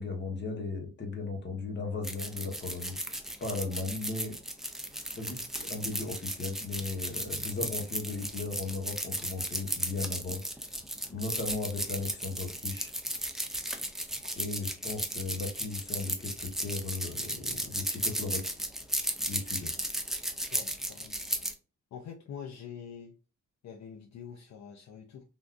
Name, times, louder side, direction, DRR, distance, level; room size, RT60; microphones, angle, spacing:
voice 1, 0.0-2.9 3.4-4.4 5.1-10.4 11.1-12.9 14.4-18.4 19.3-19.7, left 3 dB, 35° left, 1.0 m, -36 dB
sound 1, 2.0-21.5, right 1 dB, ahead, 0.4 m, -35 dB
voice 2, 20.5-21.2 21.9-23.1 23.6-25.3, left 7 dB, 55° left, 0.5 m, -45 dB
3.5 x 2.5 x 2.4 m
cardioid pair, 130°, 33 cm